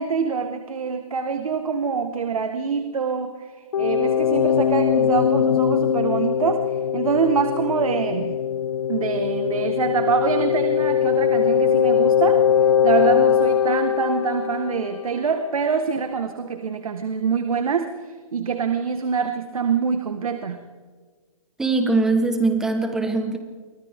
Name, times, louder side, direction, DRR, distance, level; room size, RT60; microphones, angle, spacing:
voice 1, 0.0-8.4 8.9-12.4 12.8-20.6, right 6 dB, 85° right, 7 dB, 1.7 m, -25 dB
sound 1, 3.7-15.3, left 8 dB, 65° left, 0.5 m, -21 dB
voice 2, 21.6-23.4, right 3 dB, 5° right, 5 dB, 1.4 m, -21 dB
29.5 x 24.5 x 3.7 m, 1.6 s
hypercardioid pair, 170°, 18 cm